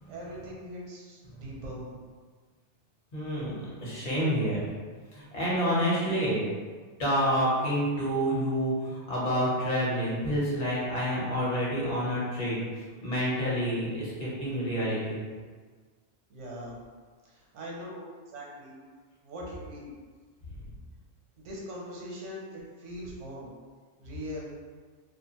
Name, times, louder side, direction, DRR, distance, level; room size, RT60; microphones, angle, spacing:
voice 1, 0.1-2.0 16.3-16.8 17.2-18.8 19.2-20.0 21.4-23.5 24.0-24.5, equal, 90° right, -3 dB, 1.0 m, -41 dB
voice 2, 3.1-4.6 5.1-6.4 7.0-12.6 13.0-15.2, equal, 40° left, -7 dB, 0.9 m, -28 dB
2.4 x 2.4 x 2.8 m, 1.5 s
omnidirectional pair, 1.2 m